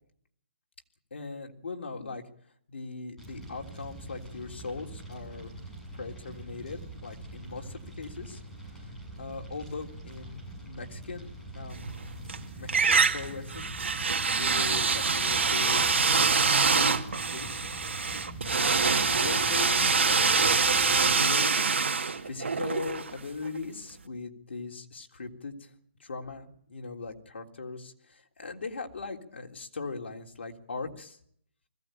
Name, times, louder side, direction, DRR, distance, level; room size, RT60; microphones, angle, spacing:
voice 1, 1.1-2.2 2.7-5.5 5.9-8.4 8.7-8.9 9.2-10.4 10.6-11.3 11.5-11.9 12.6-13.7 14.4-17.0 17.3-17.6 18.8-21.6 22.3-25.7 26.0-31.2, left 4 dB, 75° left, 2 dB, 3.5 m, -39 dB
Fire, 3.2-21.2, right 1 dB, 5° left, 7.9 m, -43 dB
sound 1, 11.8-12.4 12.7-23.6, right 5 dB, 85° right, 2.1 m, -25 dB
21.0 x 16.0 x 9.2 m, 0.66 s
hypercardioid pair, 155°, 6 cm